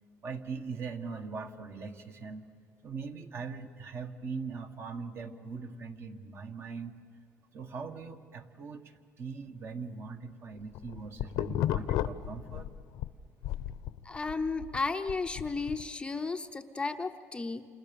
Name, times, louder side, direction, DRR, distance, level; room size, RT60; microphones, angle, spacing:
voice 1, 0.2-2.5 2.8-6.9 7.5-12.7, right 5 dB, 40° right, 7 dB, 1.6 m, -41 dB
sound 1, 10.6-13.1 13.4-15.8, left 12 dB, 75° left, 0.8 m, -33 dB
voice 2, 14.0-17.7, left 3 dB, 15° left, 7 dB, 0.7 m, -34 dB
28.5 x 28.0 x 7.0 m, 2.2 s
cardioid pair, 135°, 6 cm